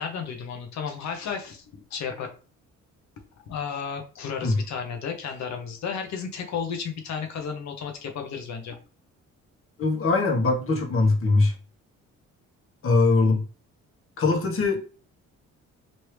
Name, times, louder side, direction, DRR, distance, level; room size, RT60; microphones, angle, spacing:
voice 1, 0.0-1.6 1.9-2.3 3.5-8.8, left 6 dB, 65° left, 4 dB, 0.8 m, -33 dB
voice 2, 9.8-11.5 12.8-13.4 14.2-14.8, left 3 dB, 45° left, 0 dB, 1.0 m, -21 dB
3.1 x 2.7 x 3.2 m, 0.37 s
cardioid pair, 90°, 30 cm